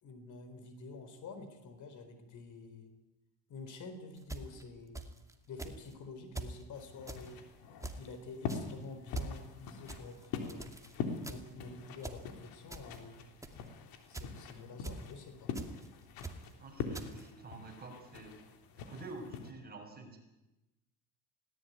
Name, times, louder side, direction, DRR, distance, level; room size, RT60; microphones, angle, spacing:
voice 1, 0.0-2.9 3.5-5.0 5.5-7.4 8.0-10.7 11.3-13.3 14.1-15.5, left 3 dB, 55° left, 9 dB, 4.2 m, -48 dB
sound 1, 4.2-5.3 5.6-5.9 6.4-6.6 7.1-7.3 7.8-8.1 8.5-8.7 9.1-9.4 9.9-11.0 11.2-11.6 12.0-12.3 12.7-13.0 13.4-13.7 14.1-14.4 14.8-15.1 15.5-15.9 16.2-16.5 16.9-17.3, right 2 dB, 10° right, 2.4 m, -44 dB
sound 2, 6.7-19.5, left 6 dB, 70° left, 3.5 m, -44 dB
voice 2, 16.6-18.4 18.8-20.2, right 3 dB, 25° right, 3 dB, 6.7 m, -48 dB
19.5 x 18.5 x 9.6 m, 0.98 s
cardioid pair, 105°, 36 cm